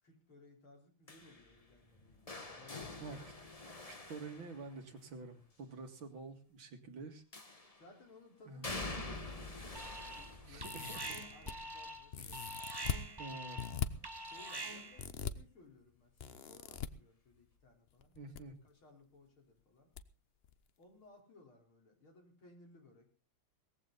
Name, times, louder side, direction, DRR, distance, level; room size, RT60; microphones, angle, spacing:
voice 1, 0.0-3.3 7.8-12.4 14.2-19.9 20.8-23.1, left 2 dB, 85° left, 2 dB, 5.0 m, -61 dB
sound 1, 1.1-5.1 7.3-7.9 8.6-14.4 14.8-15.2 16.4-16.5, left 2 dB, 20° left, 1.4 m, -48 dB
voice 2, 3.0-3.3 4.1-7.6 8.5-8.8 10.5-11.1 12.2-12.4 13.2-13.7 18.2-18.6, right 3 dB, 70° right, 6 dB, 2.9 m, -48 dB
Alarm, 9.7-10.3 10.6-15.1, right 1 dB, 20° right, 0.6 m, -45 dB
sound 2, 10.6-11.5 12.1-13.0 13.6-13.9 15.0-15.3 16.2-16.9 18.0-18.4 18.7-18.8 20.0-20.1 20.4-20.5, left 7 dB, 65° left, 0.6 m, -40 dB
18.5 x 15.0 x 4.0 m, 0.35 s
omnidirectional pair, 2.2 m